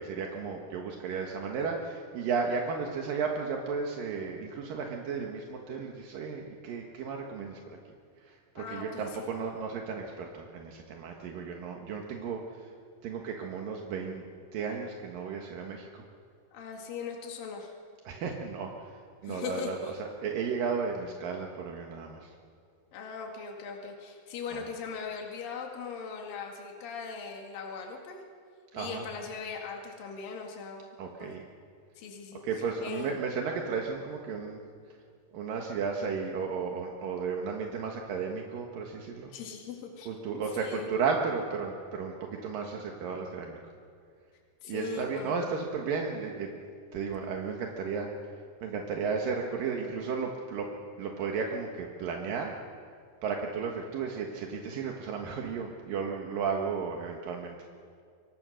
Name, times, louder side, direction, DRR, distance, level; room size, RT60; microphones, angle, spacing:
voice 1, 0.0-7.8 8.2-12.7 13.0-14.2 14.5-16.0 18.0-22.3 24.5-24.6 28.7-29.0 31.0-31.4 32.3-34.6 35.3-39.3 40.0-43.6 44.6-46.5 46.9-48.3 48.6-50.7 51.0-52.6 53.2-57.6, right 5 dB, 75° right, 1 dB, 3.2 m, -34 dB
voice 2, 8.6-9.3 16.5-17.7 19.2-20.0 22.9-28.2 28.8-30.9 31.2-31.4 32.0-32.4 32.8-33.2 39.3-40.1 40.6-40.9 44.6-45.3, left 5 dB, 75° left, 1 dB, 3.7 m, -40 dB
26.0 x 23.5 x 6.4 m, 2.2 s
omnidirectional pair, 4.0 m